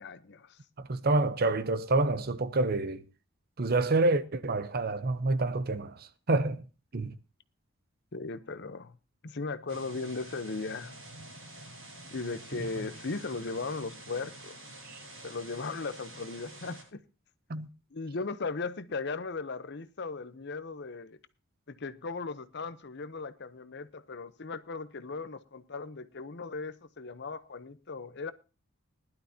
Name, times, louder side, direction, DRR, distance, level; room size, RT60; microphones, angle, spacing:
voice 1, 0.0-0.6 8.1-9.0 9.2-11.0 12.1-14.8 15.2-17.0 17.9-21.2 21.7-28.3, left 3 dB, 55° left, 0.8 m, -37 dB
voice 2, 0.8-3.1 3.6-6.6 6.9-7.1 14.8-15.0 17.5-17.7, right 2 dB, 50° right, 0.8 m, -28 dB
sound 1, 9.7-16.8, right 1 dB, 70° right, 7.9 m, -48 dB
19.5 x 11.5 x 2.8 m
head